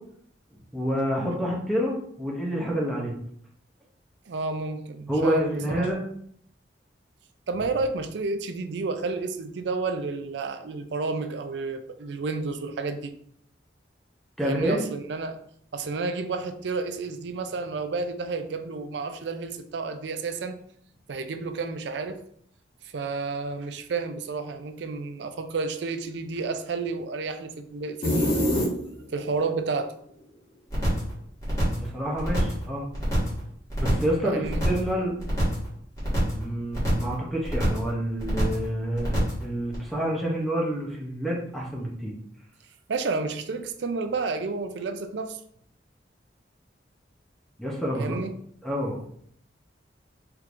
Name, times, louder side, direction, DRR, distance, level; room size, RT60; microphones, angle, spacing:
voice 1, 0.7-3.1 5.1-6.0 14.4-14.8 31.8-32.9 33.8-35.1 36.3-42.1 47.6-48.1 48.6-49.0, equal, ahead, -3 dB, 0.6 m, -28 dB
voice 2, 4.3-5.9 7.5-13.1 14.4-15.4 15.7-20.5 21.1-22.2 22.8-28.5 29.1-29.9 34.2-34.6 42.9-45.4 47.9-48.3, right 4 dB, 70° right, 8 dB, 0.4 m, -31 dB
sound 1, 28.0-29.3, equal, 55° left, 1.3 m, -24 dB
sound 2, 30.7-31.1 31.4-31.9 32.2-32.6 32.9-33.4 33.7-34.1 34.4-34.9 35.2-35.7 36.0-36.4 36.7-37.1 37.4-37.9 38.2-38.7 39.0-39.4 39.7-39.8, equal, 20° left, 1.6 m, -27 dB
4.5 x 3.4 x 2.5 m, 0.67 s
head